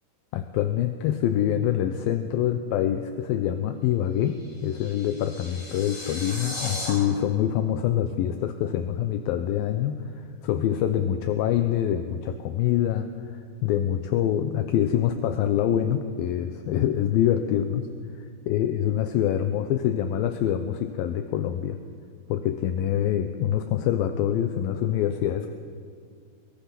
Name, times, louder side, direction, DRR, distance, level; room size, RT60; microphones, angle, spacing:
voice 1, 0.3-17.9 18.5-21.8 22.3-25.5, left 10 dB, 75° left, 8 dB, 2.5 m, -25 dB
sound 1, 4.2-6.9, left 2 dB, 35° left, 7.2 m, -37 dB
22.5 x 22.5 x 5.9 m, 2.2 s
omnidirectional pair, 4.4 m